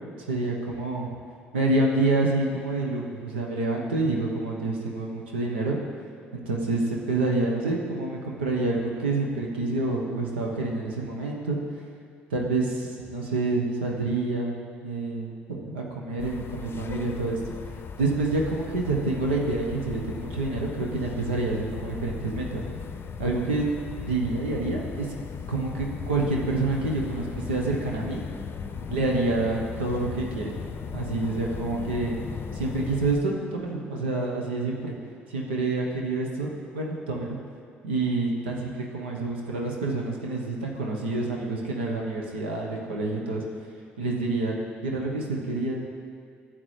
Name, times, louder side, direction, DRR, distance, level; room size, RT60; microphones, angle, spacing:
voice 1, 0.3-1.1 1.5-5.8 6.3-11.6 12.3-17.5 18.0-22.6 23.2-23.7 24.1-25.1 25.5-28.2 28.9-30.5 30.9-32.2 32.5-35.0 35.3-37.4 37.8-43.4 44.0-44.6 44.8-45.8, right 2 dB, 85° right, -1 dB, 1.1 m, -27 dB
sound 1, 16.2-33.2, left 6 dB, 40° left, 0.6 m, -37 dB
12.5 x 7.8 x 3.3 m, 2.3 s
hypercardioid pair, 55°, 6 cm